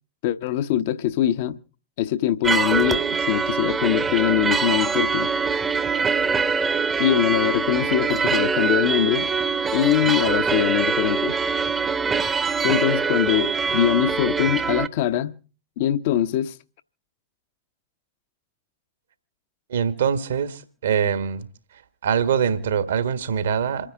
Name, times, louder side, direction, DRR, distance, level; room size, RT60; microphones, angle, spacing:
voice 1, 0.2-1.6 2.0-5.3 7.0-9.3 9.7-11.3 12.6-15.4 15.8-16.5, left 12 dB, 50° left, 0.8 m, -22 dB
sound 1, 2.4-14.9, right 5 dB, 20° right, 0.8 m, -23 dB
voice 2, 19.7-21.5 22.0-23.9, right 7 dB, 65° right, 1.4 m, -23 dB
27.5 x 9.9 x 3.7 m
figure-of-eight pair, 90°, 0 cm